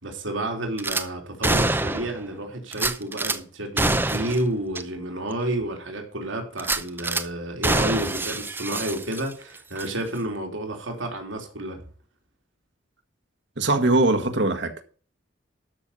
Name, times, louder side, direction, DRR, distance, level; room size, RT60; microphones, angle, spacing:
voice 1, 0.0-11.8, right 1 dB, 80° right, 3.1 m, -30 dB
Gunshot gunfire / Glass, 0.8-1.0 1.4-2.2 2.7-3.4 3.8-4.4 4.7-4.8 5.3-5.4 6.6-7.2 7.6-9.4 9.8-9.9, right 2 dB, 10° right, 0.7 m, -25 dB
voice 2, 13.6-14.8, right 2 dB, 65° right, 1.7 m, -21 dB
13.0 x 6.4 x 5.5 m
head